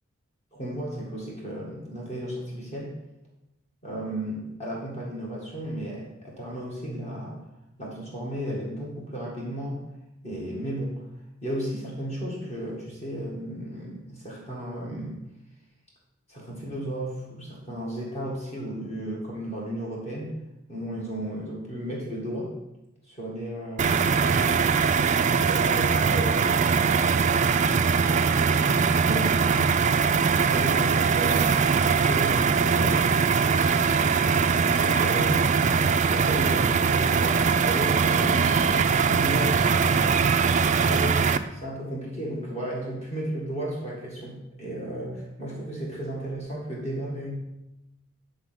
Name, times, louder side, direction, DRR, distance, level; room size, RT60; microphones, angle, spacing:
voice 1, 0.5-2.9 3.8-7.4 7.8-9.8 10.2-11.0 11.4-15.2 16.3-20.4 20.7-22.5 23.1-24.1 25.4-26.6 28.8-29.7 30.5-31.5 32.0-33.3 34.6-38.6 39.0-40.2 40.8-47.4, right 1 dB, 30° left, -4 dB, 1.8 m, -34 dB
sound 1, 23.8-41.4, right 5 dB, 35° right, 0.3 m, -22 dB
8.8 x 3.9 x 5.9 m, 0.89 s
head